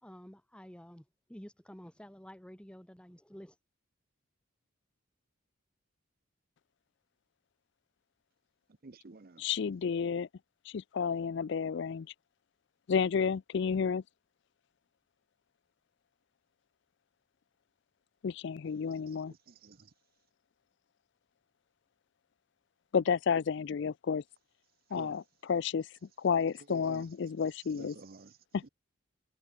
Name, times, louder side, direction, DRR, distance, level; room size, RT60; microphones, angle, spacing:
voice 1, 0.0-3.6, equal, 5° left, 1.4 m, -51 dB
voice 2, 8.8-9.5 19.1-19.9 24.9-25.2 26.6-27.1 27.8-28.4 28.6-28.7, right 3 dB, 45° right, 0.7 m, -50 dB
voice 3, 9.4-10.3 10.7-12.1 12.9-14.0 18.2-19.3 22.9-24.2 24.9-25.2 25.5-25.9 26.2-28.0 28.5-28.7, left 6 dB, 60° left, 0.4 m, -31 dB
head